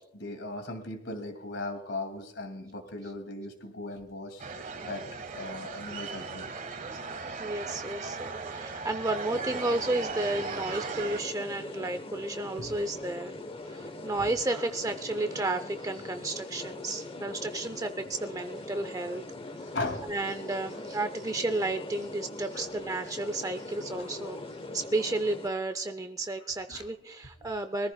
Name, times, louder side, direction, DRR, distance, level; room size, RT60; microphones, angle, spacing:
voice 1, 0.1-4.4 4.8-5.0 5.3-6.5 12.6-12.7 19.7-20.1 22.5-22.6 24.0-24.1 26.7-26.8, left 2 dB, 80° left, 6 dB, 2.3 m, -37 dB
sound 1, 4.4-11.2, right 4 dB, 45° right, 1.6 m, -38 dB
voice 2, 7.4-13.3 13.7-19.2 20.1-24.4 24.7-27.9, right 2 dB, 20° right, 8 dB, 0.5 m, -32 dB
sound 2, 9.3-25.5, left 2 dB, 30° left, 1.0 m, -41 dB
23.5 x 14.5 x 2.2 m, 0.88 s
head